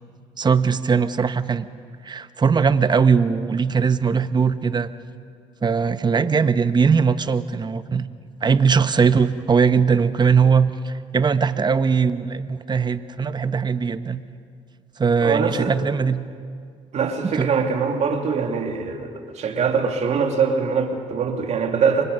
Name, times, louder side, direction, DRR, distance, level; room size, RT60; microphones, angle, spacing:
voice 1, 0.4-1.7 2.0-4.9 5.6-8.1 8.4-14.2 15.0-16.2 17.2-17.5, right 5 dB, 35° right, 12 dB, 1.1 m, -20 dB
voice 2, 15.2-15.8 16.9-22.0, right 5 dB, 55° right, 3 dB, 2.8 m, -23 dB
29.5 x 23.5 x 5.5 m, 2.1 s
supercardioid pair, 65°, 13 cm